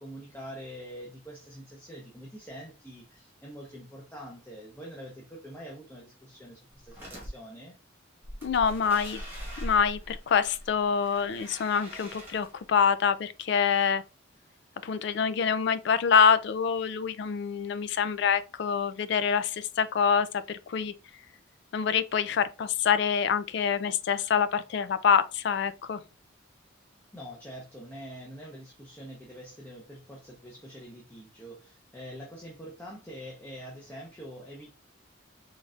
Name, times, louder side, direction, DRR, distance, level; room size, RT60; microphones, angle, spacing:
voice 1, 0.0-7.8 27.1-34.7, equal, 10° left, 0.6 m, -45 dB
sound 1, 6.7-7.3 8.2-12.8, equal, 10° right, 1.3 m, -42 dB
voice 2, 8.4-9.2 9.6-14.0 14.8-20.9 21.7-26.0, left 6 dB, 55° left, 0.3 m, -26 dB
3.9 x 3.2 x 2.4 m
head